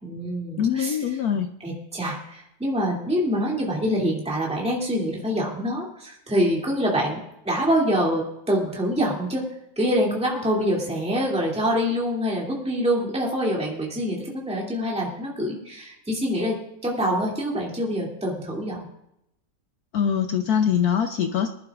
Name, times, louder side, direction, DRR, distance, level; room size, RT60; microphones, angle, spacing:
voice 1, 0.0-1.0 1.6-7.2 7.4-9.5 9.8-16.5 16.8-18.9, equal, 5° right, -3 dB, 2.5 m, -25 dB
voice 2, 0.6-1.5 19.9-21.5, left 8 dB, 65° left, 6 dB, 1.0 m, -23 dB
22.5 x 11.0 x 2.4 m, 0.81 s
omnidirectional pair, 2.1 m